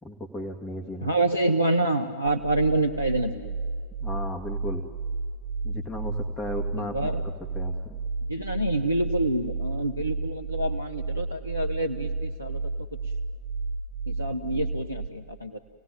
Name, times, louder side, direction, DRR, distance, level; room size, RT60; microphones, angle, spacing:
voice 1, 0.0-1.1 4.0-4.8 5.6-7.1 7.5-8.0, left 1 dB, 10° left, -1 dB, 2.0 m, -35 dB
voice 2, 1.0-3.6 6.7-7.2 8.3-12.6 13.0-13.1 14.1-15.6, right 2 dB, 90° right, 4 dB, 0.9 m, -27 dB
sound 1, 2.4-15.1, right 3 dB, 60° right, 2.1 m, -32 dB
28.0 x 18.0 x 9.2 m, 2.1 s
figure-of-eight pair, 90°, 0 cm